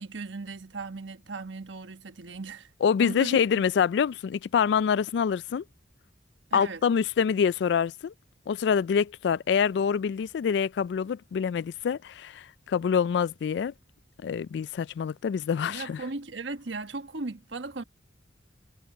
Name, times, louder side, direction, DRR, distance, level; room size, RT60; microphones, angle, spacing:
voice 1, 0.0-2.7 3.0-3.6 6.5-6.8 15.7-17.8, right 3 dB, 85° right, 1.3 m, -37 dB
voice 2, 2.8-5.6 6.5-8.1 8.5-13.7 14.2-16.0, left 7 dB, 65° left, 0.3 m, -26 dB
head